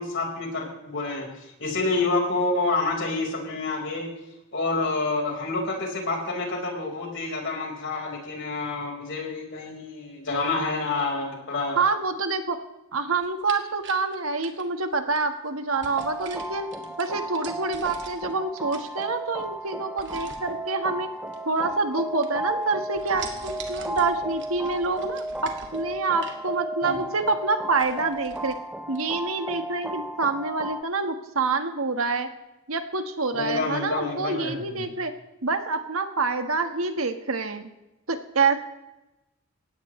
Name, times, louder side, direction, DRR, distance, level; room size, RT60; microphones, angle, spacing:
voice 1, 0.0-4.1 4.5-11.8 26.8-27.0 33.3-34.9, left 3 dB, 60° left, 0 dB, 4.8 m, -28 dB
voice 2, 11.8-12.6 12.9-16.7 17.0-21.1 21.4-28.6 28.9-32.3 32.7-35.1 35.4-37.7 38.1-38.6, right 4 dB, 75° right, 7 dB, 1.6 m, -27 dB
sound 1, 13.2-15.2 15.8-18.3 18.6-19.4 20.0-20.5 21.3-22.0 22.2-22.6 22.9-26.5 26.9-27.0 27.4-27.5 27.7-28.6 29.0-29.1, right 5 dB, 60° right, 2.1 m, -43 dB
sound 2, 15.7-30.8, right 1 dB, 5° right, 0.5 m, -34 dB
20.5 x 17.5 x 3.2 m, 0.95 s
head